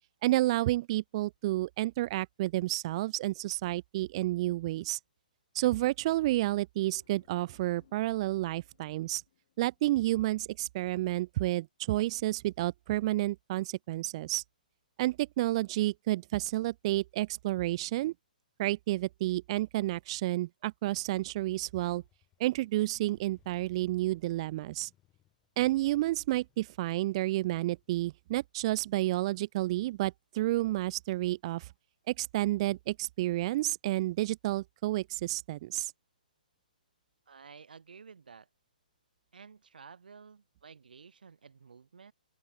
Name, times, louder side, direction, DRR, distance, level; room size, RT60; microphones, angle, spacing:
voice 1, 0.2-5.0 5.5-9.2 9.6-14.4 15.0-18.1 18.6-22.0 22.4-24.9 25.6-31.7 32.1-35.9, right 17 dB, 40° right, 0.4 m, -30 dB
sound 1, 6.9-10.6, left 11 dB, 55° left, 5.4 m, -67 dB
Motorcycle, 21.6-29.2, left 13 dB, 20° left, 7.1 m, -70 dB
voice 2, 37.3-38.5 39.3-42.1, right 6 dB, 80° right, 3.4 m, -52 dB
open air
hypercardioid pair, 140°, 5 cm